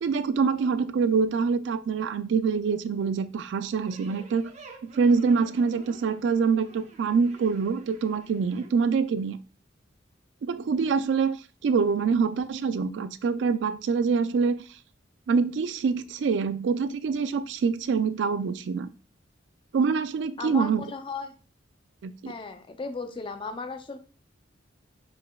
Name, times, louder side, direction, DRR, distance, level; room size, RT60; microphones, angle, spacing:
voice 1, 0.0-4.5 4.8-9.4 10.4-11.4 11.6-14.6 15.3-18.9 19.7-20.8 22.0-22.3, right 5 dB, 75° right, 0.3 m, -25 dB
sound 1, 3.8-8.7, right 3 dB, 35° right, 0.7 m, -50 dB
voice 2, 20.4-21.3 22.3-24.0, left 4 dB, 30° left, 0.4 m, -36 dB
5.1 x 4.0 x 2.3 m
head